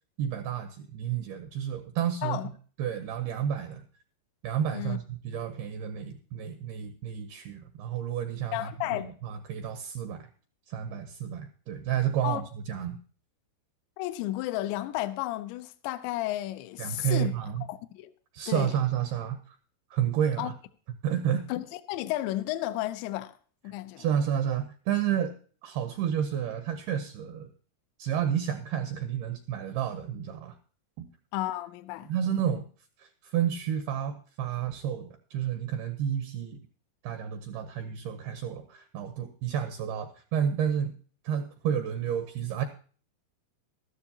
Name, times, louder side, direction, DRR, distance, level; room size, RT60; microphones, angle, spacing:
voice 1, 0.2-2.4 2.8-3.8 4.4-10.3 10.7-13.0 16.8-17.7 18.3-19.6 19.9-20.5 21.0-21.4 24.0-25.3 25.6-27.5 28.0-30.6 31.0-31.1 32.1-32.7 33.0-36.6 37.0-40.9 41.2-42.6, right 9 dB, 85° right, 2.3 m, -30 dB
voice 2, 8.5-9.1 12.2-12.4 14.0-17.3 17.7-18.1 18.5-18.7 20.4-20.5 21.5-23.3 23.6-24.1 31.3-32.1, left 15 dB, 80° left, 2.7 m, -32 dB
14.5 x 12.5 x 2.8 m
omnidirectional pair, 5.5 m